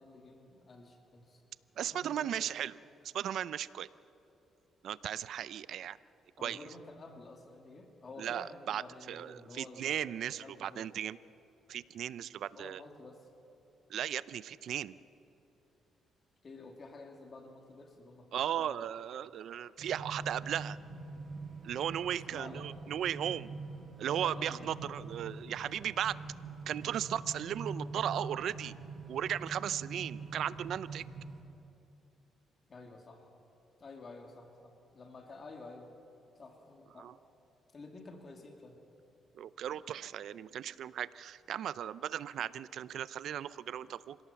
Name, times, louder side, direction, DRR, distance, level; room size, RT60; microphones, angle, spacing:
voice 1, 0.0-1.4 1.8-2.5 6.4-10.1 10.4-10.9 12.5-13.3 16.4-18.9 22.3-22.7 24.1-25.0 32.7-33.3 33.8-35.9 36.4-37.1 37.7-38.8, left 3 dB, 40° left, 3 dB, 2.5 m, -51 dB
voice 2, 1.8-2.8 3.1-3.9 4.8-6.0 6.4-6.7 8.2-8.8 9.1-11.2 11.7-12.8 13.9-15.0 18.3-20.8 21.6-23.5 24.0-26.2 26.7-28.8 29.1-31.0 37.0-37.1 39.3-44.2, right 10 dB, 70° right, 17 dB, 0.5 m, -36 dB
sound 1, 19.8-31.4, right 3 dB, 45° right, 6.8 m, -44 dB
26.5 x 17.5 x 7.1 m, 2.8 s
cardioid pair, 90°, 0 cm